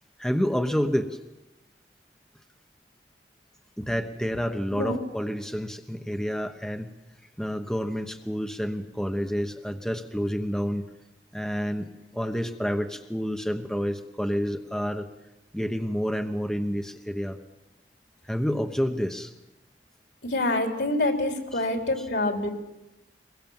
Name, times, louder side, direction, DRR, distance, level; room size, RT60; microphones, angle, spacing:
voice 1, 0.2-1.2 3.8-6.9 7.4-10.8 11.3-15.1 15.5-17.4 18.3-19.3 21.5-21.6, equal, 5° left, 5 dB, 1.1 m, -29 dB
voice 2, 20.2-22.5, left 2 dB, 80° left, 4 dB, 3.8 m, -26 dB
22.5 x 22.5 x 7.3 m, 0.96 s
head